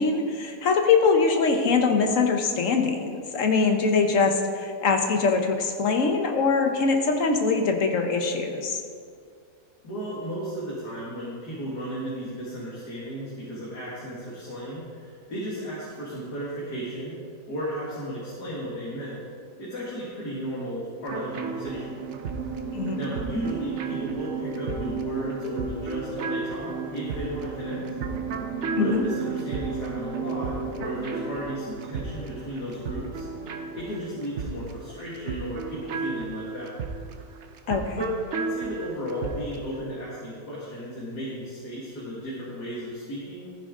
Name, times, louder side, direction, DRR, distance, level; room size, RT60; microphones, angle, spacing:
voice 1, 0.0-8.8 22.7-23.0 28.8-29.0 37.7-38.0, left 4 dB, 55° left, 4 dB, 1.3 m, -23 dB
voice 2, 9.8-17.2 17.5-19.2 19.6-22.0 23.0-27.8 28.8-33.3 33.7-36.8 37.9-43.5, equal, 75° left, -7 dB, 2.7 m, -34 dB
sound 1, 21.0-34.4, right 6 dB, 90° right, 1.6 m, -35 dB
sound 2, 21.1-39.7, right 4 dB, 55° right, 0.9 m, -35 dB
14.0 x 9.8 x 3.8 m, 2.2 s
omnidirectional pair, 1.7 m